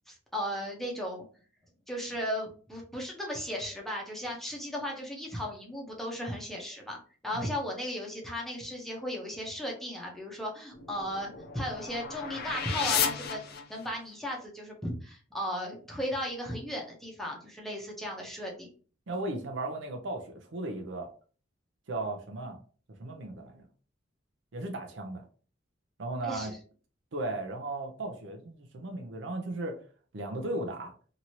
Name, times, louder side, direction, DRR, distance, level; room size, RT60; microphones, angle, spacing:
voice 1, 0.1-1.2 1.9-13.4 13.7-18.7 26.2-26.6, equal, ahead, -1 dB, 0.7 m, -36 dB
sound 1, 10.7-14.1, left 7 dB, 55° left, 0.5 m, -33 dB
voice 2, 19.1-21.1 21.9-22.6 23.0-23.6 24.5-25.2 26.0-26.5 27.1-29.8 30.1-30.9, right 2 dB, 70° right, 3 dB, 0.6 m, -36 dB
2.9 x 2.6 x 2.9 m, 0.40 s
head